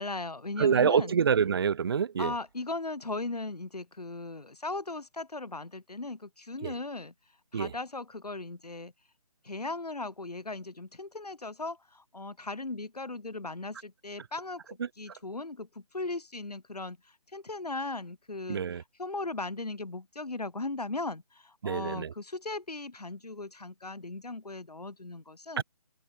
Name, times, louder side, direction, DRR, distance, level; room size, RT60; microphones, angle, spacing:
voice 1, 0.0-1.1 2.2-7.1 7.5-8.9 9.4-14.6 15.0-25.6, left 2 dB, 85° left, 6.0 m, -38 dB
voice 2, 0.6-2.3 6.6-6.7 7.5-7.7 14.8-14.9 18.5-18.8 21.6-22.1 25.6-25.7, right 7 dB, 40° right, 0.8 m, -26 dB
figure-of-eight pair, 155°, 20 cm